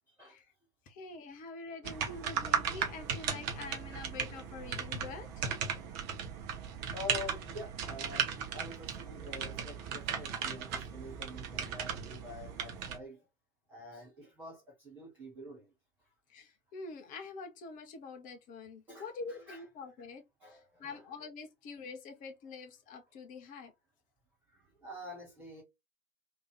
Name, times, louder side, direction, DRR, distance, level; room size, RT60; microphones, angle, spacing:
voice 1, 0.1-0.4 1.8-2.4 2.7-2.8 5.7-5.9 6.9-13.3 13.7-15.7 18.9-19.6 20.4-21.0 24.5-25.6, left 1 dB, 5° right, 0.3 m, -47 dB
voice 2, 0.9-5.4 16.3-20.2 20.5-23.7, left 4 dB, 20° left, 0.7 m, -46 dB
sound 1, 1.8-13.0, right 7 dB, 25° right, 0.7 m, -37 dB
3.3 x 2.9 x 3.2 m
figure-of-eight pair, 110°, 42 cm